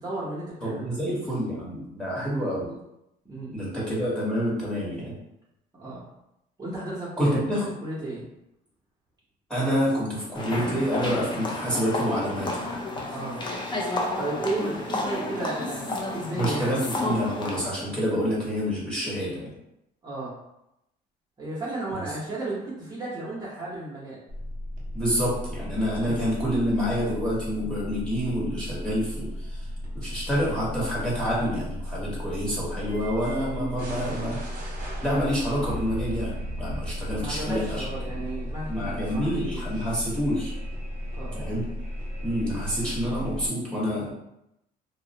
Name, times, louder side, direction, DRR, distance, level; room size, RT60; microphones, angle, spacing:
voice 1, 0.0-1.0 3.2-3.5 5.8-6.0 6.6-7.4 7.8-8.2 13.1-13.5 14.2-16.7 20.0-20.3 21.4-24.2 26.0-26.2 37.1-39.9 41.1-41.4 42.5-42.6, right 2 dB, 25° right, -8 dB, 0.8 m, -34 dB
voice 2, 0.6-2.7 3.5-5.1 7.2-7.7 9.5-13.1 16.4-19.5 24.9-29.6 29.9-34.4 35.0-37.8 38.1-38.3 38.7-40.5 41.3-41.6 42.2-44.1, equal, 5° left, -7 dB, 1.0 m, -28 dB
sound 1, 10.3-17.6, left 2 dB, 25° left, 0.4 m, -31 dB
sound 2, 24.3-43.5, equal, 55° right, 0.8 m, -35 dB
2.5 x 2.0 x 2.7 m, 0.85 s
cardioid pair, 110°, 17 cm